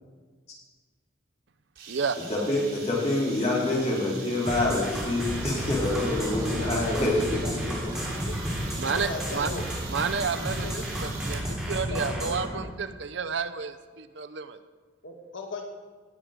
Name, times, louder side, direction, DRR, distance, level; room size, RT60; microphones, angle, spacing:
sound 1, 1.8-11.5, right 5 dB, 80° right, 3.4 m, -44 dB
voice 1, 2.3-7.4 7.7-7.8, left 2 dB, 35° left, -4 dB, 4.1 m, -26 dB
sound 2, 4.5-12.4, equal, 5° right, 3.0 m, -33 dB
sound 3, 5.3-12.7, right 1 dB, 20° right, 0.9 m, -38 dB
voice 2, 7.4-8.3 8.9-9.7 10.5-10.9 11.9-12.5 15.0-15.7, left 3 dB, 75° left, 3 dB, 1.5 m, -38 dB
voice 3, 8.8-9.5 9.9-14.6, right 5 dB, 60° right, 11 dB, 0.6 m, -31 dB
18.0 x 7.6 x 5.2 m, 1.4 s
head